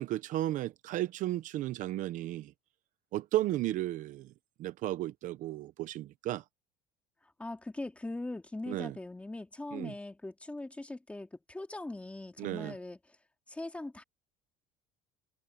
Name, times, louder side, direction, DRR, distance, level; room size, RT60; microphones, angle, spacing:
voice 1, 0.0-2.5 3.1-4.3 4.6-6.4 8.7-8.9 9.7-9.9 12.4-12.8, right 15 dB, 50° right, 0.8 m, -34 dB
voice 2, 7.4-13.2 13.5-14.0, left 2 dB, 5° left, 2.4 m, -41 dB
cardioid pair, 145°, 17 cm